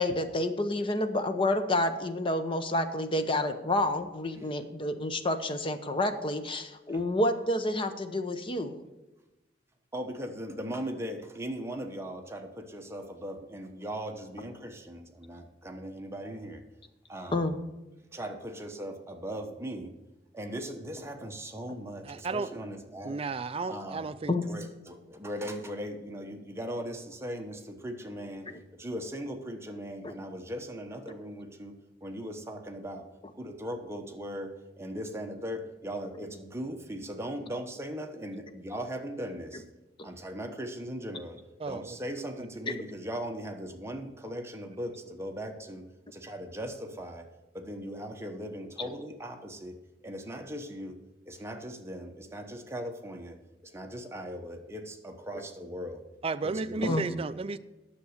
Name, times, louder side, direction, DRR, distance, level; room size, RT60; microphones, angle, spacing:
voice 1, 0.0-8.8 17.3-17.6 24.3-24.4 42.7-42.8 56.8-57.1, left 1 dB, 30° left, 8 dB, 0.8 m, -29 dB
voice 2, 9.9-16.6 17.1-17.5 18.1-19.9 20.3-23.2 23.7-24.0 24.4-33.1 33.3-39.6 40.0-45.9 46.1-47.3 47.5-51.0 51.3-56.0 56.4-57.2, equal, 15° right, 4 dB, 1.0 m, -39 dB
voice 3, 22.0-22.5 23.0-24.3 41.6-41.9 56.2-57.6, right 4 dB, 30° right, 14 dB, 0.4 m, -33 dB
9.9 x 7.1 x 6.5 m, 1.0 s
head